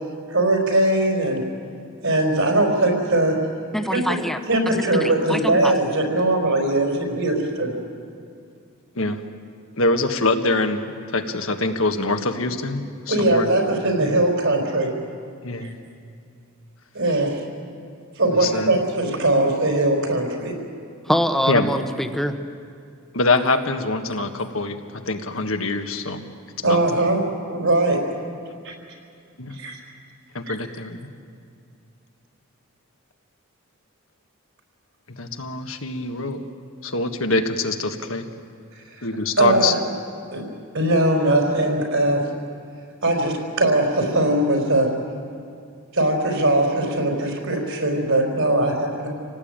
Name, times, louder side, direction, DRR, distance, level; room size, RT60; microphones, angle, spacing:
voice 1, 0.3-1.4 2.0-3.4 3.9-4.2 4.5-7.7 13.1-14.9 15.6-15.7 16.9-17.4 18.2-20.5 26.6-27.2 27.5-28.0 28.6-28.7 29.6-29.8 38.9-39.0 39.4-39.8 40.3-40.4 40.7-42.2 43.0-44.9 45.9-49.1, right 1 dB, 65° right, 2 dB, 4.7 m, -20 dB
voice 2, 3.7-4.4 4.9-5.7 21.1-22.3, equal, ahead, 7 dB, 1.1 m, -24 dB
voice 3, 9.8-13.5 14.0-14.1 15.4-15.7 18.4-18.7 21.5-21.7 23.1-24.8 25.1-26.2 26.6-26.8 29.4-29.6 30.3-31.0 35.2-36.4 36.8-38.3 39.0-39.7, left 3 dB, 70° left, 6 dB, 1.7 m, -24 dB
28.0 x 18.0 x 9.0 m, 2.3 s
head